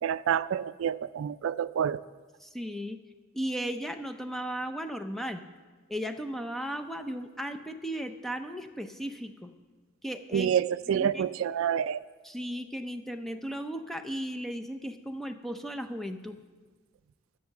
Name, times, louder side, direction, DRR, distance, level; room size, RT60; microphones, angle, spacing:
voice 1, 0.0-2.0 10.3-12.0, right 8 dB, 75° right, 17 dB, 0.3 m, -28 dB
voice 2, 2.4-3.0 3.3-5.4 5.9-9.5 10.0-10.6 10.9-11.2 12.2-16.4, equal, ahead, 8 dB, 0.5 m, -36 dB
12.5 x 6.4 x 7.1 m, 1.4 s
head